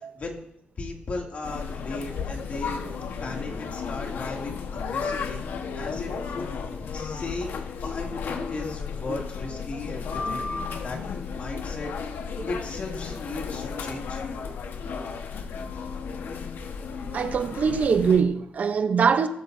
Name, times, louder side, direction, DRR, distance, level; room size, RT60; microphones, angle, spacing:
voice 1, 0.8-2.8 3.2-5.4 5.7-6.5 6.9-10.4 10.8-11.0 11.3-11.9 12.5-14.2, left 3 dB, 45° left, 2.5 m, -36 dB
sound 1, 1.4-18.2, left 5 dB, 75° left, 1.2 m, -33 dB
voice 2, 17.1-19.3, right 6 dB, 50° right, 0.7 m, -22 dB
17.5 x 14.5 x 2.7 m
wide cardioid pair, 160°, 3 cm